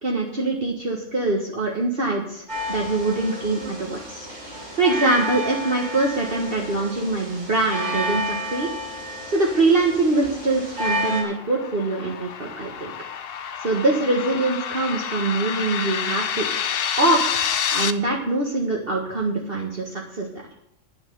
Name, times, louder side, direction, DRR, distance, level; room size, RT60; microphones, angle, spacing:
voice 1, 0.0-4.3 4.8-8.7 9.3-12.9 13.6-16.5 17.0-20.3, right 2 dB, 50° right, -1 dB, 1.7 m, -23 dB
sound 1, 2.5-11.2, equal, 80° right, 4.5 m, -31 dB
sound 2, 10.2-17.9, left 8 dB, 55° left, 0.8 m, -29 dB
10.5 x 10.0 x 6.7 m, 0.77 s
omnidirectional pair, 1.3 m